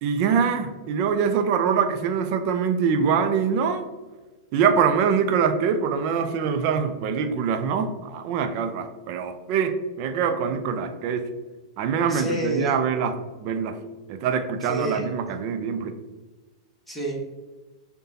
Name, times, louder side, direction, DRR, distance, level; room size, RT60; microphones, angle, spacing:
voice 1, 0.0-3.8 4.5-11.3 11.8-13.8 14.1-15.9, right 6 dB, 45° right, 8 dB, 0.5 m, -24 dB
voice 2, 12.1-12.7 14.6-15.0 16.9-17.1, right 1 dB, 5° left, -4 dB, 1.2 m, -29 dB
6.6 x 2.2 x 2.7 m, 1.2 s
figure-of-eight pair, 100°, 3 cm